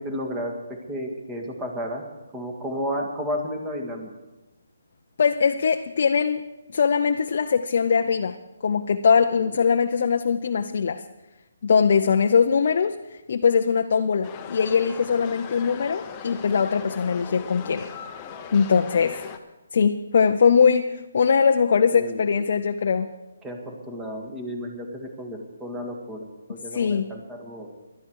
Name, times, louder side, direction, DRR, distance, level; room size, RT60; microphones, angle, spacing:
voice 1, 0.0-2.0 2.3-4.1 9.4-9.5 18.9-19.1 21.9-22.4 23.4-27.7, equal, 10° right, 1 dB, 1.9 m, -33 dB
voice 2, 5.2-6.5 6.7-8.4 8.6-11.0 11.6-13.0 13.3-17.9 18.5-19.2 19.7-23.1 26.7-27.1, left 6 dB, 55° left, 6 dB, 0.6 m, -21 dB
sound 1, 14.2-19.4, left 7 dB, 20° left, 1.0 m, -39 dB
17.0 x 12.0 x 4.7 m, 1.1 s
hypercardioid pair, 165°, 0 cm